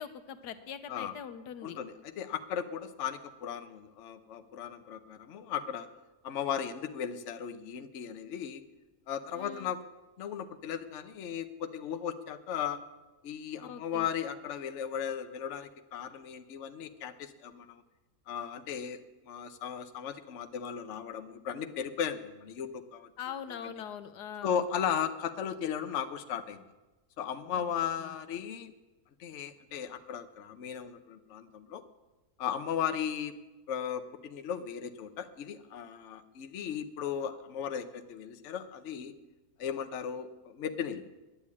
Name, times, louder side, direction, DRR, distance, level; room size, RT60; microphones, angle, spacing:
voice 1, 0.0-1.8 9.3-9.7 13.6-14.1 23.2-24.6 27.5-27.7 28.0-28.1, left 8 dB, 90° left, 10 dB, 1.4 m, -42 dB
voice 2, 1.6-5.9 6.2-8.6 9.1-9.8 10.2-12.8 13.2-17.8 18.3-23.1 23.6-23.7 24.4-26.7 27.2-28.7 29.2-31.8 32.4-33.3 33.7-39.1 39.6-41.0, left 8 dB, 55° left, 9 dB, 1.0 m, -36 dB
10.5 x 9.8 x 8.4 m, 1.1 s
omnidirectional pair, 1.7 m